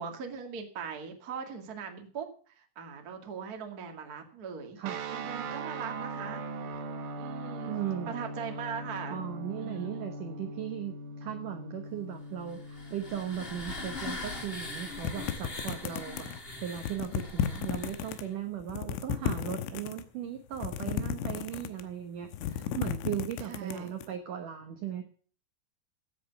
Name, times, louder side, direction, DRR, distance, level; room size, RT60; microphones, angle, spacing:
voice 1, 0.0-4.8 5.1-6.9 7.2-7.8 8.1-9.2 9.6-10.0 23.4-23.9, right 6 dB, 45° right, 4 dB, 1.2 m, -40 dB
sound 1, 4.8-15.2, right 2 dB, 90° right, 4.1 m, -41 dB
voice 2, 7.7-8.1 9.1-16.3 16.6-25.0, right 10 dB, 70° right, 6 dB, 2.0 m, -37 dB
sound 2, 12.5-18.3, left 3 dB, 55° left, 0.6 m, -41 dB
sound 3, 15.0-16.4 16.8-18.2 18.6-20.0 20.5-21.9 22.2-24.1, left 9 dB, 85° left, 3.5 m, -33 dB
16.0 x 8.4 x 5.9 m, 0.43 s
omnidirectional pair, 5.4 m